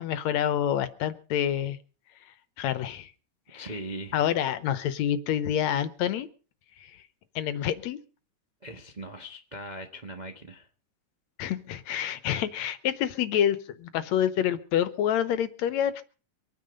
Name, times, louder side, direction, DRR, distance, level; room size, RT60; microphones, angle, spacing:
voice 1, 0.0-1.8 2.6-3.1 3.5-3.6 4.1-6.3 7.4-8.0 11.4-16.0, left 10 dB, 70° left, 15 dB, 2.1 m, -27 dB
voice 2, 3.5-4.2 8.6-10.7, right 1 dB, 35° right, 4 dB, 0.7 m, -40 dB
24.5 x 9.5 x 5.2 m, 0.38 s
omnidirectional pair, 3.4 m